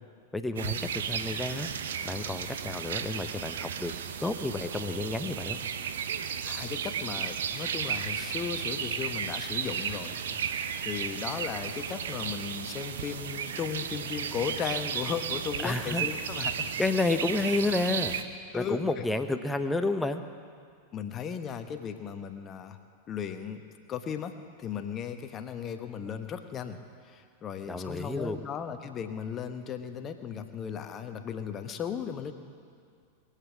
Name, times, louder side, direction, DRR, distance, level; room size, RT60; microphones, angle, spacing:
voice 1, 0.3-1.7 2.0-3.9 4.2-5.6 15.6-16.1 16.8-18.1 18.5-20.2 27.7-28.4, left 2 dB, 5° left, 8 dB, 0.9 m, -30 dB
sound 1, 0.6-18.2, right 7 dB, 60° right, 0.8 m, -34 dB
voice 2, 6.4-10.4 10.8-16.7 18.5-18.8 20.9-22.8 23.1-23.6 23.9-24.3 24.6-26.8 27.1-32.3, left 7 dB, 25° left, 7 dB, 1.2 m, -36 dB
22.5 x 8.6 x 7.4 m, 2.3 s
figure-of-eight pair, 90°, 0 cm